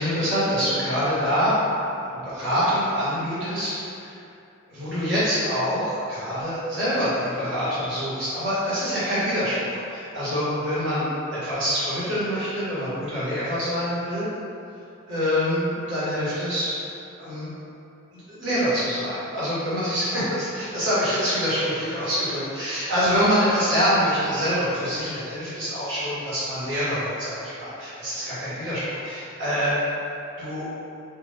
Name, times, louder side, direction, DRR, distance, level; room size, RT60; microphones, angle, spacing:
voice 1, 0.0-4.2 4.7-14.3 15.1-16.7 17.2-17.5 18.1-29.8 30.4-30.7, equal, 60° right, -11 dB, 1.5 m, -25 dB
3.5 x 2.5 x 3.3 m, 2.6 s
head